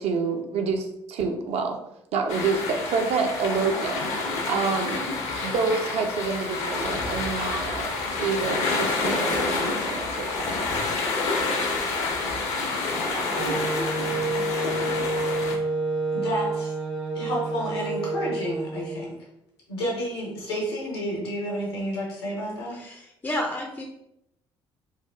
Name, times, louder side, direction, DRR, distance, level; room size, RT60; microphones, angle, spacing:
voice 1, 0.0-1.8 2.1-4.0 4.5-5.0 5.4-10.7, right 4 dB, 55° right, 4 dB, 0.5 m, -28 dB
sound 1, 2.3-15.5, left 3 dB, 60° left, 0.6 m, -28 dB
Wind instrument woodwind instrument, 13.4-19.0, right 2 dB, 85° right, 1.0 m, -29 dB
voice 2, 16.1-16.7 17.1-19.2 19.7-22.8, equal, 85° left, -3 dB, 0.8 m, -30 dB
voice 3, 22.7-23.8, left 1 dB, 15° left, 0 dB, 0.4 m, -31 dB
3.1 x 2.3 x 2.2 m, 0.82 s
figure-of-eight pair, 50°, 13 cm